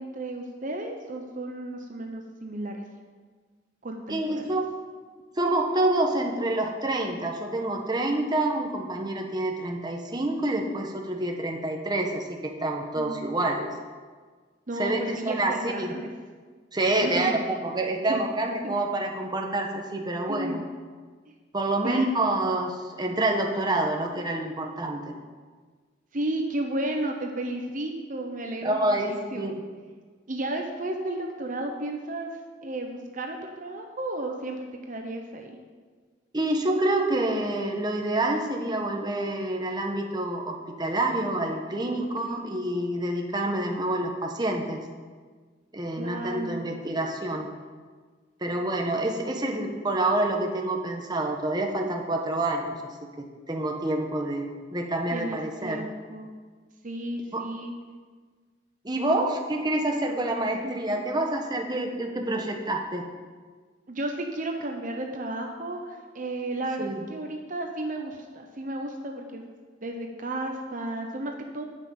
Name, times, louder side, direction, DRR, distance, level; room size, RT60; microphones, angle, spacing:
voice 1, 0.0-2.8 3.8-4.5 12.9-13.3 14.7-16.1 17.0-17.5 18.1-18.2 18.6-18.7 20.3-20.6 21.3-21.4 21.8-22.1 26.1-29.6 30.3-32.3 32.6-35.6 42.0-42.4 46.0-46.6 55.1-56.3 56.8-57.7 60.6-60.7 63.9-69.5 69.8-71.6, right 1 dB, 45° right, 3 dB, 1.0 m, -33 dB
voice 2, 4.1-4.7 5.4-13.7 14.8-15.9 16.7-20.6 21.5-25.1 28.6-29.6 36.3-44.8 45.7-47.5 48.4-55.9 57.3-57.4 58.8-63.1 66.8-67.0, right 2 dB, 25° right, 2 dB, 1.1 m, -27 dB
10.5 x 6.0 x 8.6 m, 1.5 s
head